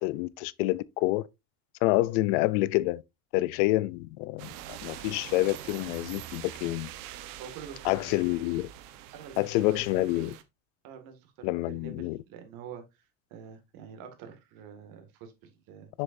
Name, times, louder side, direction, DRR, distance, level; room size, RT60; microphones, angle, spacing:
voice 1, 0.0-1.3 1.8-3.0 3.3-6.9 7.8-8.7 9.4-10.3 11.4-12.2 15.9-16.0, left 18 dB, 85° left, 0.6 m, -27 dB
sound 1, 4.4-10.4, right 12 dB, 80° right, 1.1 m, -44 dB
voice 2, 7.4-8.1 9.1-9.5 9.8-10.4 10.8-12.8 13.3-15.9, right 7 dB, 60° right, 2.1 m, -46 dB
7.4 x 6.7 x 2.6 m
cardioid pair, 155°, 37 cm